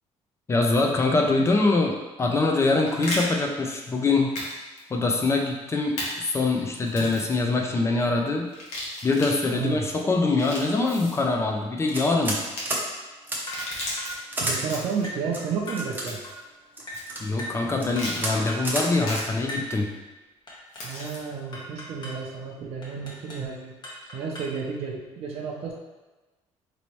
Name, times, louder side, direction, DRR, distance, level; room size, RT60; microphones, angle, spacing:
voice 1, 0.5-4.3 4.9-8.5 9.0-12.4 17.2-19.9, left 3 dB, 25° left, 2 dB, 0.5 m, -24 dB
sound 1, 2.5-3.2 4.3-4.5 4.8-4.9 6.0-6.1 6.9-7.3 8.5-9.3 10.2-11.2 12.4-12.6 13.3-14.1 14.6-15.1 16.1-16.4 16.9-17.0 17.9-18.2 19.0-19.2 20.7-21.2, left 1 dB, 85° left, 1.2 m, -34 dB
voice 2, 9.5-9.9 14.4-16.2 20.8-23.7 24.1-25.7, right 5 dB, 60° right, -1 dB, 0.6 m, -31 dB
sound 2, 11.9-12.4 12.7-12.8 13.3-13.4 14.3-14.6 15.3-16.0 16.8-17.2 17.7-17.9 18.2-18.3 18.6-18.9, right 1 dB, 15° right, 0.7 m, -29 dB
sound 3, 13.5-13.7 14.0-14.2 14.5-14.7 15.0-15.3 15.7-15.9 16.2-16.4 16.9-17.1 17.4-17.6 17.9-18.2 18.5-18.7 19.0-19.2 19.5-19.7 20.5-21.2 21.5-22.2 22.8-23.5 23.8-24.6, equal, 40° left, 1.0 m, -38 dB
4.1 x 3.0 x 3.1 m, 1.2 s
cardioid pair, 135°, 12 cm